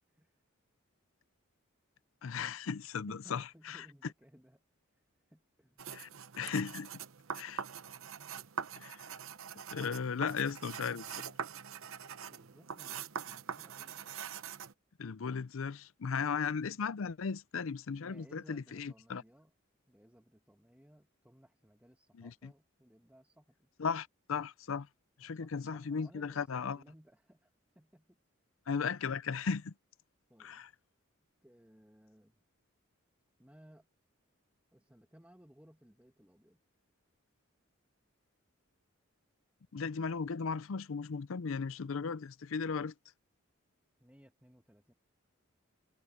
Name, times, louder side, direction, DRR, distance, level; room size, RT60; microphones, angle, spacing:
voice 1, 2.2-3.9 5.9-6.1 6.4-6.9 7.3-7.6 8.8-9.0 9.7-11.3 15.0-19.2 22.1-22.5 23.8-24.9 25.2-26.8 28.7-29.7 30.4-30.7 39.7-42.9, left 5 dB, 70° left, 0.5 m, -36 dB
voice 2, 3.1-4.6 5.3-5.8 12.3-14.1 18.0-19.5 19.9-23.7 25.3-27.5 27.7-28.2 30.3-30.6 31.4-32.4 33.4-33.9 34.7-36.6 44.0-44.9, equal, 5° right, 1.7 m, -61 dB
sound 1, 5.8-14.7, right 7 dB, 75° right, 0.8 m, -44 dB
head